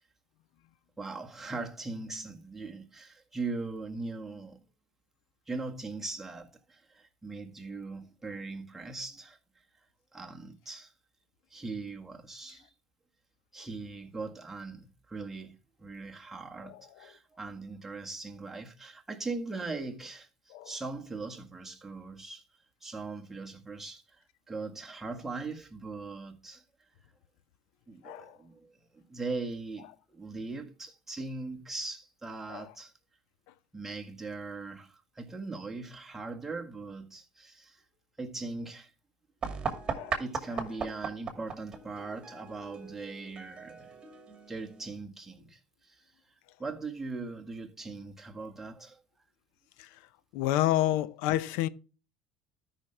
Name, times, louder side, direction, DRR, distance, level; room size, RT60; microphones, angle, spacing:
voice 1, 1.0-4.6 5.5-9.4 10.1-10.9 11.5-12.7 13.5-20.3 20.6-22.4 22.8-24.0 24.5-26.6 27.9-32.9 33.7-37.8 38.2-38.9 40.2-43.9 44.5-46.0 46.6-49.0, right 3 dB, 10° right, 1.8 m, -40 dB
voice 2, 28.0-28.4 32.5-32.7 39.9-40.2 49.8-49.9 50.3-51.7, left 14 dB, 80° left, 0.6 m, -29 dB
sound 1, 39.4-45.0, right 5 dB, 30° right, 2.4 m, -38 dB
13.0 x 5.8 x 3.3 m
supercardioid pair, 110°, 3 cm